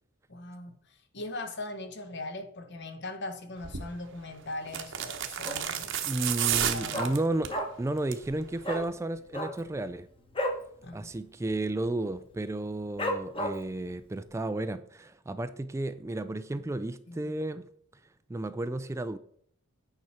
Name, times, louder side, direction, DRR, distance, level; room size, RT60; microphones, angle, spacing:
voice 1, 0.3-6.3 6.7-7.2 10.8-11.1 16.5-16.7 17.1-17.3, left 2 dB, 55° left, 1.1 m, -40 dB
sound 1, 3.6-3.9 4.7-7.6 8.0-8.3 8.6-8.7, right 9 dB, 60° right, 1.0 m, -31 dB
Dog, 5.4-5.9 6.2-6.3 6.5-8.0 8.2-8.3 8.6-8.9 9.2-10.7 11.0-11.2 11.4-11.9 12.3-12.4 13.0-13.8 14.3-14.4, equal, 25° left, 1.2 m, -32 dB
voice 2, 6.1-7.5 7.8-10.1 10.9-17.7 18.3-19.2, right 2 dB, 15° right, 0.3 m, -33 dB
9.2 x 5.9 x 4.3 m
head